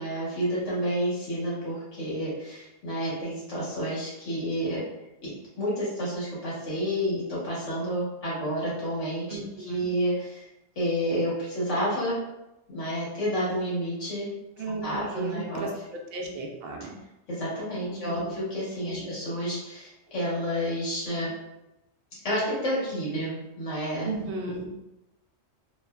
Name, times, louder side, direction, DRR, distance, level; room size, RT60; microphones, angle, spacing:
voice 1, 0.0-4.8 5.2-5.3 5.6-10.4 10.7-12.2 12.7-14.3 14.8-15.7 17.3-21.3 22.2-24.1, equal, 75° left, -7 dB, 1.5 m, -30 dB
voice 2, 9.3-9.9 14.6-15.7 16.1-16.9 17.8-18.4 18.8-19.1 24.0-24.7, right 3 dB, 65° right, 1 dB, 0.7 m, -35 dB
3.1 x 2.1 x 2.2 m, 0.93 s
omnidirectional pair, 1.3 m